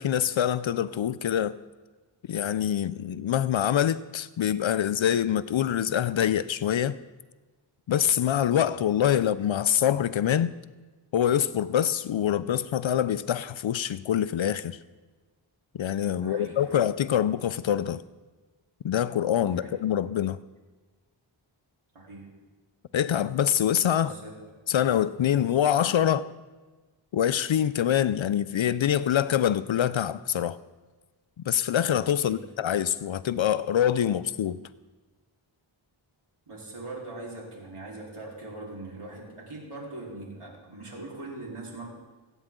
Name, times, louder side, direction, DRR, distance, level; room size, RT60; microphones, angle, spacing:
voice 1, 0.0-1.5 2.3-7.0 7.9-10.5 11.1-14.8 15.7-18.0 18.8-20.4 22.9-24.1 24.7-26.3 27.1-30.6 31.5-34.6, left 10 dB, 65° left, 0.6 m, -25 dB
voice 2, 16.2-16.9 19.4-19.8 21.9-22.3 23.9-24.3 32.2-32.4 36.5-41.9, right 2 dB, 80° right, 4.0 m, -41 dB
24.5 x 9.1 x 3.8 m
cardioid pair, 45°, 50 cm